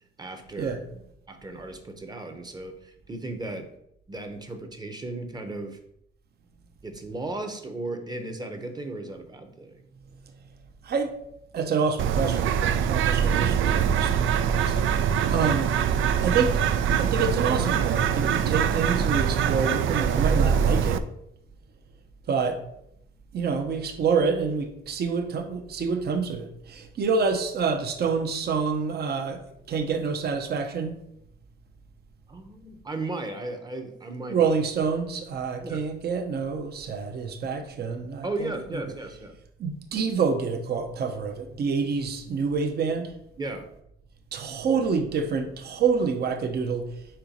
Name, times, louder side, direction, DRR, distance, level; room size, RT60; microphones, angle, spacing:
voice 1, 0.2-0.8 1.3-3.7 4.1-5.8 6.8-9.8 32.3-34.5 35.6-35.8 38.2-39.3 43.4-43.7, right 2 dB, 20° right, 6 dB, 0.8 m, -35 dB
voice 2, 10.8-11.1 11.5-15.8 16.2-16.6 17.0-21.0 22.3-22.6 23.3-29.4 29.7-31.0 34.3-38.8 39.6-43.1 44.3-46.9, right 5 dB, 50° right, 5 dB, 0.8 m, -27 dB
Bird, 12.0-21.0, right 8 dB, 75° right, 0.4 m, -23 dB
4.8 x 4.5 x 5.2 m, 0.75 s
cardioid pair, 135°, 20 cm